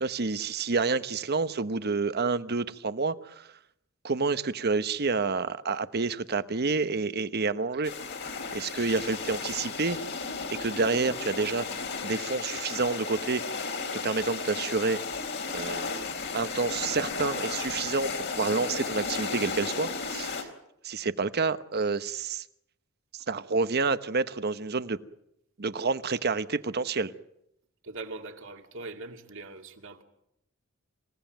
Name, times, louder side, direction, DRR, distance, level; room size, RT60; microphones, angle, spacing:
voice 1, 0.0-3.5 4.0-7.9 8.5-10.0 10.6-11.7 12.0-13.7 14.0-15.0 15.5-15.9 16.3-20.3 20.8-22.4 23.1-25.0 25.6-27.1, right 4 dB, 50° right, 1.0 m, -29 dB
sound 1, 7.8-20.4, left 4 dB, 55° left, 3.8 m, -34 dB
voice 2, 27.8-30.0, right 3 dB, 65° right, 2.4 m, -41 dB
27.5 x 17.0 x 9.2 m
head